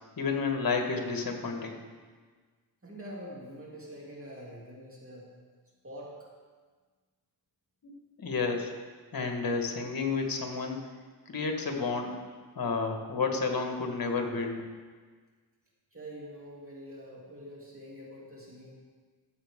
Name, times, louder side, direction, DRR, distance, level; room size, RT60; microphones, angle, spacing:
voice 1, 0.2-1.8 7.8-7.9 8.2-8.7 9.1-10.8 11.3-12.1 12.5-14.7, left 4 dB, 55° left, 3 dB, 1.6 m, -31 dB
voice 2, 2.8-5.3 5.8-6.3 15.9-18.7, equal, 30° right, -5 dB, 2.8 m, -45 dB
14.0 x 7.3 x 3.7 m, 1.5 s
cardioid pair, 70°, 41 cm